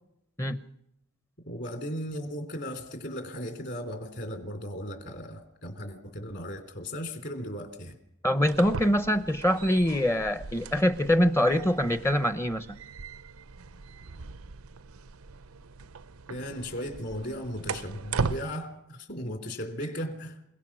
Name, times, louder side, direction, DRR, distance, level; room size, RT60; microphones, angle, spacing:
voice 1, 1.4-8.0 16.3-20.4, equal, 50° left, 6 dB, 3.4 m, -36 dB
voice 2, 8.2-12.7, equal, 10° left, 11 dB, 0.7 m, -24 dB
sound 1, 8.3-18.4, right 4 dB, 80° right, 0.7 m, -39 dB
28.0 x 17.5 x 6.2 m, 0.81 s
head